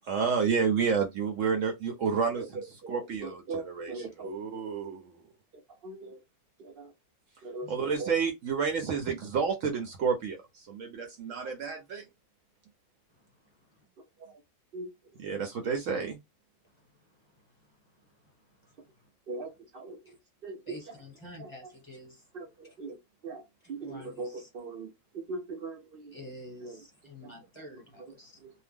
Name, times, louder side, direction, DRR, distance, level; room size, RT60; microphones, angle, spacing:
voice 1, 0.0-5.2 7.7-12.0 15.2-16.2, right 6 dB, 65° right, 0.9 m, -30 dB
voice 2, 2.4-4.3 5.8-6.2 6.6-6.9 7.4-8.1 14.2-14.3 14.7-14.9 19.3-20.0 20.4-20.6 20.9-21.0 21.4-21.5 22.3-23.0 23.2-23.4 23.7-26.1 26.6-26.8 28.0-28.2 28.4-28.5, right 3 dB, 90° right, 0.5 m, -40 dB
voice 3, 20.6-22.2 23.8-24.5 26.1-28.4, left 1 dB, 20° left, 1.2 m, -48 dB
2.7 x 2.0 x 3.4 m
omnidirectional pair, 1.7 m